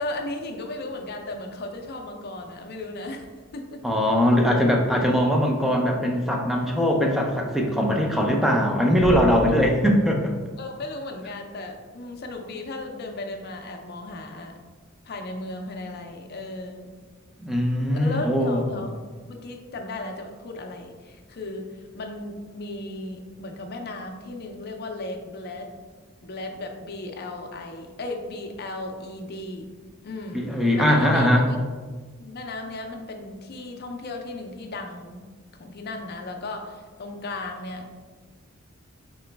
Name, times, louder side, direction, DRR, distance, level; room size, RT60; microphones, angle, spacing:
voice 1, 0.0-3.3 3.5-3.8 9.5-9.7 10.6-14.5 15.0-16.9 17.9-19.0 19.2-25.7 26.2-29.7 30.0-30.5 30.8-31.6 32.2-35.2 35.6-37.9, left 2 dB, 50° left, 3 dB, 0.5 m, -35 dB
voice 2, 3.8-10.4 17.4-18.7 30.3-31.5, equal, ahead, 0 dB, 0.5 m, -21 dB
Bass drum, 9.0-10.4, equal, 50° right, 0.9 m, -33 dB
3.9 x 3.0 x 3.3 m, 1.4 s
head